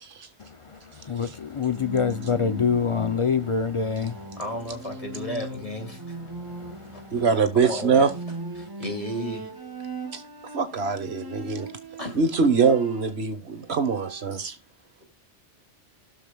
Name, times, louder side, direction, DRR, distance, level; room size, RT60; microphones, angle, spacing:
voice 1, 1.1-4.1, left 6 dB, 50° left, 0.3 m, -25 dB
Bowed string instrument, 1.6-13.3 13.6-14.4, right 2 dB, 20° right, 1.0 m, -39 dB
voice 2, 4.4-6.2 6.8-7.0 7.5-8.0 8.6-9.5 12.0-12.5, equal, 30° left, 2.5 m, -34 dB
voice 3, 7.1-8.1 10.1-10.2 10.5-11.7 12.1-14.5, right 5 dB, 60° right, 1.5 m, -23 dB
19.5 x 6.5 x 2.3 m
omnidirectional pair, 1.2 m